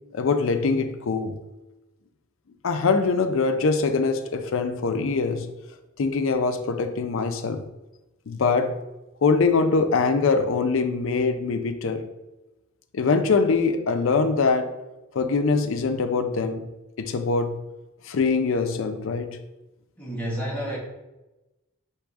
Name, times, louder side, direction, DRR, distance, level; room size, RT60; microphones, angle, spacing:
voice 1, 0.1-1.4 2.6-5.5 6.0-7.6 8.3-8.8 9.2-12.0 12.9-14.7 15.1-16.6 17.0-17.6 18.1-19.4, left 4 dB, 70° left, 0.5 m, -23 dB
voice 2, 20.0-20.8, right 1 dB, 10° left, 1.0 m, -30 dB
4.7 x 3.0 x 3.5 m
head